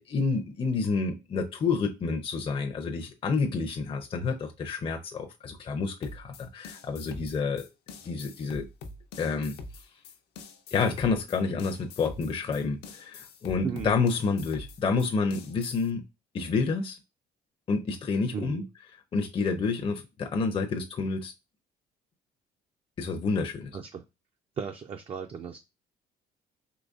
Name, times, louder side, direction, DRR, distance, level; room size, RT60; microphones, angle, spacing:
voice 1, 0.0-7.6 8.0-8.7 9.2-9.5 10.7-16.0 16.3-17.0 17.7-18.6 19.1-21.3 23.0-23.8, left 4 dB, 30° left, 4 dB, 0.6 m, -29 dB
sound 1, 6.0-15.9, left 3 dB, 75° left, 0.7 m, -44 dB
voice 2, 13.6-14.0 18.3-18.7 23.7-24.0 24.6-25.6, right 6 dB, 35° right, 5 dB, 0.4 m, -36 dB
3.9 x 3.0 x 2.4 m, 0.24 s
cardioid pair, 110°, 17 cm